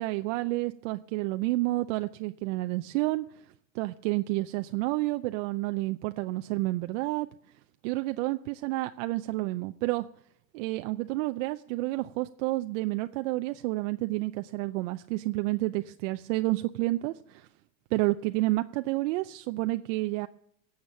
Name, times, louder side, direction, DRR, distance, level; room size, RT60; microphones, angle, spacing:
voice 1, 0.0-3.2 3.7-7.3 7.8-10.0 10.5-17.5 17.9-20.3, right 20 dB, 65° right, 8 dB, 0.6 m, -30 dB
17.0 x 7.3 x 7.2 m, 0.74 s
supercardioid pair, 110°, 40 cm